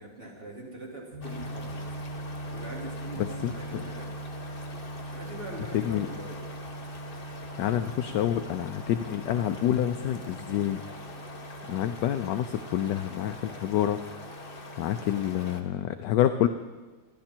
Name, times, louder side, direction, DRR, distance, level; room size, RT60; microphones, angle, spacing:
voice 1, 0.0-1.9 2.5-4.1 5.1-6.5, right 1 dB, 25° right, -3 dB, 3.3 m, -42 dB
sound 1, 1.1-15.5, right 1 dB, 60° right, 5.7 m, -42 dB
sound 2, 1.2-15.6, left 2 dB, 30° left, 1.4 m, -44 dB
voice 2, 3.4-3.8 5.7-6.1 7.6-10.8 11.7-14.0 14.8-16.5, left 11 dB, 70° left, 8 dB, 1.2 m, -27 dB
26.5 x 11.5 x 4.5 m, 1.3 s
omnidirectional pair, 2.2 m